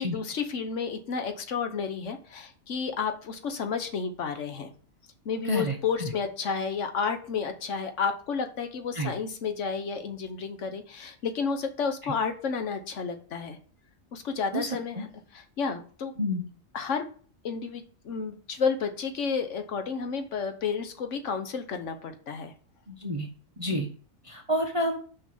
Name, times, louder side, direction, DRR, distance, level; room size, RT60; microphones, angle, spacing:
voice 1, 0.0-4.7 5.2-13.6 14.1-15.1 15.3-16.1 16.7-17.1 17.4-22.5, left 5 dB, 60° left, 7 dB, 1.3 m, -31 dB
voice 2, 5.5-6.1 8.9-9.1 12.0-12.1 14.5-15.0 16.2-16.4 22.9-23.3 23.6-23.9 24.2-25.0, equal, 25° right, 3 dB, 0.9 m, -29 dB
6.3 x 5.2 x 5.4 m, 0.42 s
omnidirectional pair, 1.4 m